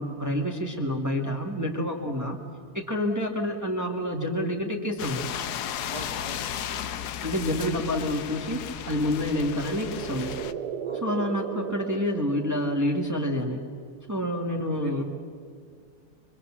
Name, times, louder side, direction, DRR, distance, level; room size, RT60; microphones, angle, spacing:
voice 1, 0.0-2.4 2.7-5.2 7.2-10.3 10.9-13.6 14.1-15.0, left 1 dB, 10° right, 1 dB, 1.8 m, -28 dB
sound 1, 5.0-10.5, left 9 dB, 75° left, 1.3 m, -35 dB
voice 2, 5.8-6.8 10.8-11.0 14.5-15.0, equal, 25° left, 0 dB, 2.1 m, -43 dB
sound 2, 9.0-13.2, right 8 dB, 75° right, 1.4 m, -36 dB
24.5 x 24.0 x 7.4 m, 2.1 s
omnidirectional pair, 1.7 m